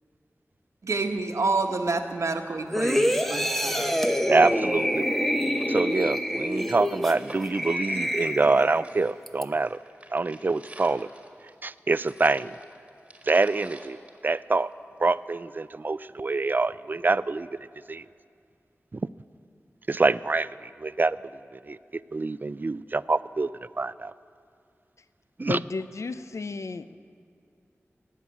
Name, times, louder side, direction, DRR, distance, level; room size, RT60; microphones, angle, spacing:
voice 1, 0.8-3.9, right 3 dB, 85° right, 5 dB, 1.0 m, -28 dB
sound 1, 2.7-8.8 9.3-9.4, equal, 5° left, 0.8 m, -26 dB
voice 2, 4.3-5.1 5.7-9.8 10.1-11.1 11.6-12.6 13.3-14.0 14.2-14.7 15.0-17.5 17.9-18.0 18.9-19.0 19.9-20.5 20.8-21.2 21.5-21.8 22.1-23.5 23.8-24.1 25.4-25.6, right 3 dB, 40° right, 17 dB, 0.3 m, -25 dB
sound 2, 5.0-5.1 5.4-8.6 8.8-14.9 15.3-15.4, right 1 dB, 25° right, 1.7 m, -49 dB
voice 3, 25.4-27.0, left 3 dB, 75° left, 13 dB, 0.5 m, -33 dB
18.0 x 7.4 x 9.5 m, 2.4 s
wide cardioid pair, 75°, 5 cm